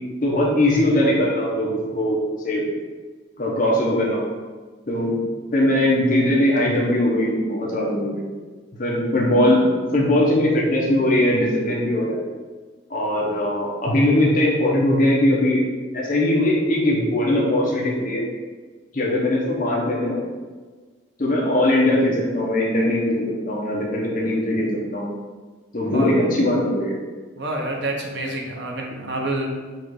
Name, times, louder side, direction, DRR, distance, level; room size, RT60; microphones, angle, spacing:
voice 1, 0.2-2.2 2.4-2.6 3.4-4.2 4.9-5.2 5.5-8.2 8.8-12.3 12.9-15.7 15.9-18.2 18.9-20.2 21.2-25.1 25.7-27.0, left 1 dB, 45° left, -3 dB, 0.9 m, -20 dB
voice 2, 27.4-29.6, right 1 dB, 60° right, 0 dB, 0.7 m, -28 dB
4.2 x 2.5 x 4.7 m, 1.4 s
head